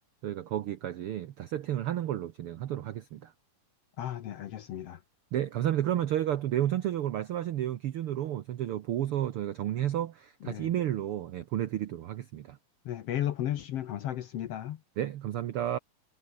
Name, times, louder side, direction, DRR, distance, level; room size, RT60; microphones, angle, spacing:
voice 1, 0.2-3.3 5.3-12.6 15.0-15.8, right 12 dB, 90° right, 1.2 m, -31 dB
voice 2, 4.0-5.0 10.4-10.7 12.8-14.8, left 11 dB, 65° left, 1.6 m, -34 dB
omnidirectional pair, 3.8 m